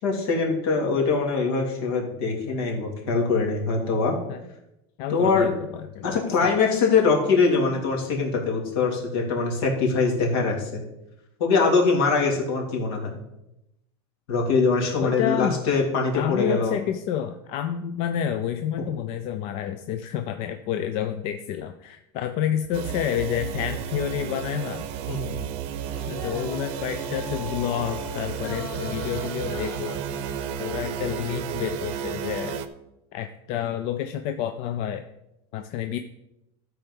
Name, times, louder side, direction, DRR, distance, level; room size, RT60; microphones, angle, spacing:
voice 1, 0.0-4.2 5.1-5.5 6.0-10.8 11.4-13.2 14.3-16.7 25.1-25.4, left 4 dB, 70° left, 0 dB, 2.8 m, -23 dB
voice 2, 5.0-6.0 6.5-6.6 15.0-15.6 16.1-24.9 26.1-30.0 30.6-32.6 33.1-35.0 35.5-36.0, left 10 dB, 45° left, 8 dB, 0.5 m, -29 dB
sound 1, 22.7-32.7, right 8 dB, 45° right, 0.7 m, -32 dB
sound 2, 25.8-31.3, left 3 dB, 25° left, 2.9 m, -41 dB
12.5 x 4.6 x 5.4 m, 0.88 s
supercardioid pair, 155°, 13 cm